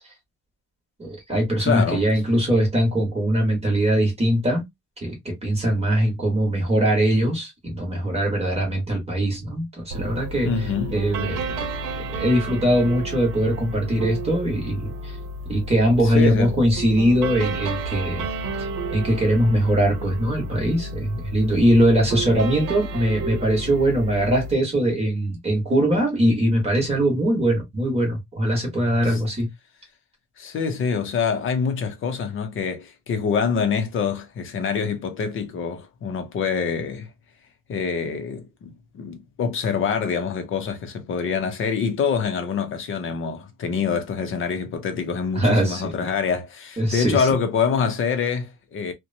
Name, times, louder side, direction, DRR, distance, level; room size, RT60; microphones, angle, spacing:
voice 1, 1.0-4.7 5.0-11.6 12.1-15.2 15.5-18.3 18.6-29.5 45.3-45.8 46.8-47.3, right 1 dB, 20° right, 1.1 m, -21 dB
voice 2, 1.6-2.1 10.4-11.0 16.0-16.6 29.0-29.2 30.4-37.1 37.7-48.9, left 6 dB, 40° left, 0.6 m, -25 dB
sound 1, 9.9-24.5, right 2 dB, 85° right, 0.7 m, -31 dB
2.8 x 2.1 x 2.5 m
cardioid pair, 165°, 32 cm